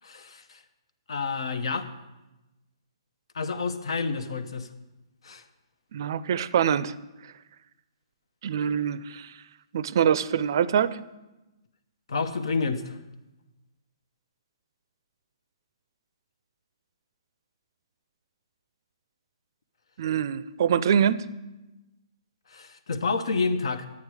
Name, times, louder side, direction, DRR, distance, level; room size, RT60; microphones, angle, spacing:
voice 1, 0.0-0.6 1.1-1.9 3.3-4.7 5.2-5.4 12.1-13.0 22.5-23.9, left 4 dB, 75° left, 10 dB, 0.9 m, -29 dB
voice 2, 5.9-6.9 8.4-9.3 9.7-11.0 20.0-21.3, right 8 dB, 50° right, 17 dB, 0.4 m, -24 dB
10.5 x 8.6 x 4.8 m, 1.0 s
hypercardioid pair, 160°, 3 cm